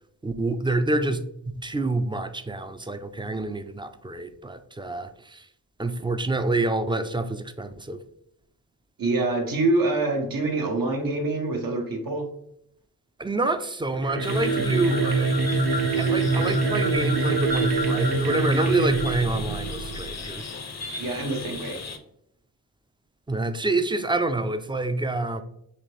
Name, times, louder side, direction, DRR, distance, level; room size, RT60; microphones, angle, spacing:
voice 1, 0.2-1.2 1.6-5.5 5.8-8.0 13.2-15.3 16.0-20.5 23.3-25.4, right 2 dB, 15° right, 10 dB, 0.4 m, -27 dB
voice 2, 9.0-12.3 21.0-21.8, right 2 dB, 70° right, 2 dB, 1.0 m, -25 dB
sound 1, 13.9-20.2, right 3 dB, 90° right, 0.6 m, -24 dB
sound 2, 14.2-22.0, left 4 dB, 45° left, 0.7 m, -37 dB
4.2 x 2.9 x 3.2 m, 0.75 s
cardioid pair, 45°, 36 cm